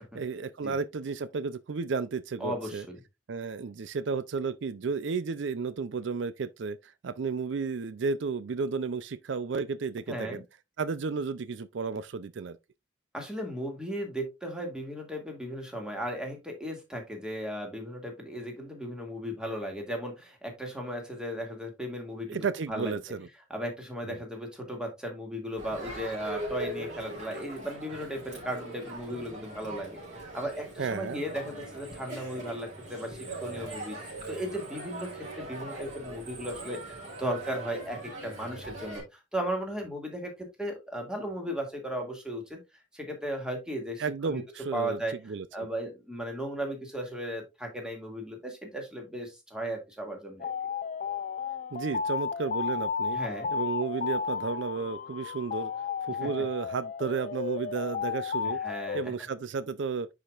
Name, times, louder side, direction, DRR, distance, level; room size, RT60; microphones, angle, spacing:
voice 1, 0.1-2.9 3.3-10.4 10.8-12.6 22.3-23.3 24.0-24.2 30.8-31.2 44.0-45.0 45.3-45.7 51.7-53.2 53.5-55.7 56.0-58.6 58.9-60.1, right 5 dB, 70° right, 0.4 m, -33 dB
voice 2, 2.4-3.0 10.1-10.4 13.1-23.0 23.5-34.0 34.3-35.1 35.4-39.0 39.3-42.6 42.9-44.4 44.7-45.2 45.5-50.5 53.1-53.5 56.2-56.3 58.6-59.1, equal, 5° right, 2.1 m, -36 dB
Crowd, 25.6-39.0, right 2 dB, 40° right, 4.0 m, -41 dB
sound 1, 50.4-59.0, left 6 dB, 40° left, 0.4 m, -33 dB
10.0 x 5.0 x 2.4 m
head